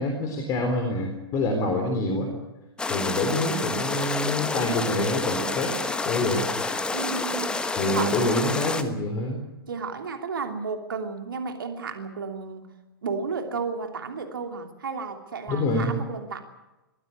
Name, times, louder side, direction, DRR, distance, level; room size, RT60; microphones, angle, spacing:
voice 1, 0.0-2.3 2.9-5.8 6.0-6.5 7.8-9.4 15.5-15.9, left 2 dB, 25° left, 4 dB, 3.8 m, -26 dB
sound 1, 2.8-8.8, left 3 dB, 5° left, 1.3 m, -29 dB
voice 2, 6.9-7.6 7.8-8.6 9.7-12.7 13.0-16.4, right 5 dB, 60° right, 5 dB, 3.0 m, -33 dB
22.0 x 16.0 x 9.7 m, 1.0 s
figure-of-eight pair, 110°, 13 cm